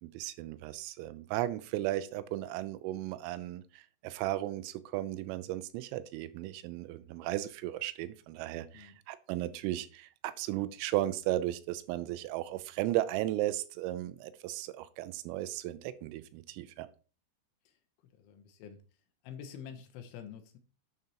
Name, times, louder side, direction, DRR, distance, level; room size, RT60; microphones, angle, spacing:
voice 1, 0.0-16.9, right 14 dB, 90° right, 3.3 m, -35 dB
voice 2, 18.1-18.8 19.2-20.6, left 8 dB, 75° left, 3.3 m, -47 dB
11.0 x 6.8 x 2.9 m
omnidirectional pair, 5.8 m